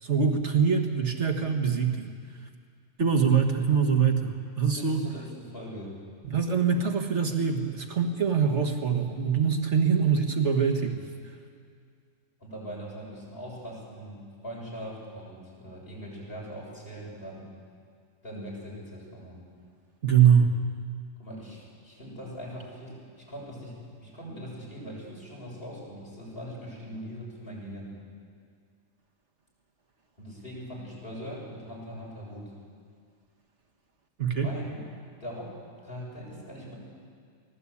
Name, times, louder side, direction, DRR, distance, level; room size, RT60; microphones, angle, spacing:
voice 1, 0.0-2.1 3.0-5.0 6.2-11.0 20.0-20.5 34.2-34.5, right 6 dB, 65° right, 3 dB, 1.9 m, -24 dB
voice 2, 4.8-6.0 12.4-17.4 18.2-19.4 21.2-27.9 30.2-32.5 34.3-34.8 35.2-35.5 35.8-36.8, equal, 45° left, -4 dB, 7.6 m, -41 dB
24.0 x 17.5 x 8.7 m, 2.1 s
omnidirectional pair, 1.3 m